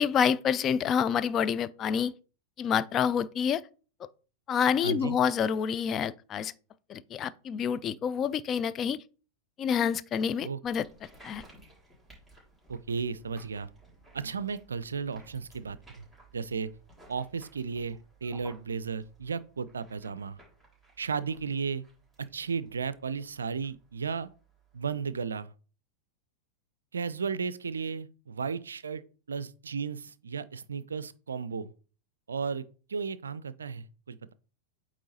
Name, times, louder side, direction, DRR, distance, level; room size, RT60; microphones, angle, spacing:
voice 1, 0.0-2.1 2.6-3.6 4.5-6.5 6.9-9.0 9.6-10.9 11.2-11.4, left 7 dB, 30° left, 0.3 m, -27 dB
voice 2, 4.8-5.2 10.4-10.6 12.7-13.7 14.1-16.1 16.3-16.7 17.1-20.4 21.0-21.8 22.2-24.3 24.7-25.5 26.9-31.7 32.3-34.3, right 5 dB, 70° right, 0.4 m, -34 dB
sound 1, 10.6-25.3, right 2 dB, ahead, 3.3 m, -57 dB
8.3 x 3.0 x 4.0 m
figure-of-eight pair, 90°, 0 cm